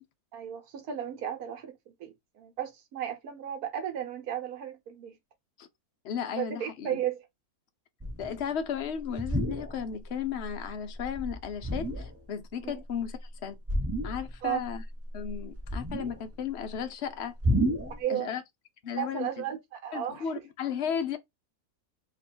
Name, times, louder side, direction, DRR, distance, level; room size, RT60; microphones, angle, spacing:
voice 1, 0.3-5.2 6.4-7.3 12.6-12.7 14.4-14.6 18.0-18.3 18.9-20.3, right 10 dB, 85° right, 1.3 m, -34 dB
voice 2, 6.0-7.0 8.2-13.6 14.0-14.8 15.1-17.3 18.1-18.4 18.8-19.4 19.9-21.2, left 8 dB, 55° left, 0.9 m, -34 dB
sound 1, 8.0-8.4 9.1-10.0 10.4-10.7 10.9-12.2 13.7-14.5 14.7-16.4 17.4-18.0, equal, 15° right, 0.5 m, -31 dB
3.0 x 3.0 x 4.2 m
omnidirectional pair, 1.6 m